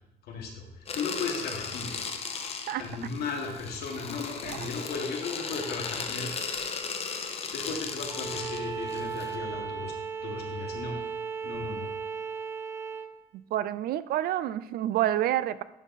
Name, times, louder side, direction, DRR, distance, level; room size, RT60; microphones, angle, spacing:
voice 1, 0.2-1.9 2.8-6.3 7.3-9.9 10.2-10.9 11.4-11.9, left 4 dB, 70° left, 2 dB, 1.6 m, -36 dB
sound 1, 0.9-9.3, left 5 dB, 35° left, 0.8 m, -36 dB
Bowed string instrument, 8.1-13.1, right 6 dB, 15° right, 0.6 m, -36 dB
voice 2, 13.5-15.6, right 12 dB, 65° right, 16 dB, 0.4 m, -28 dB
11.0 x 3.9 x 4.1 m, 0.90 s
cardioid pair, 110°, 17 cm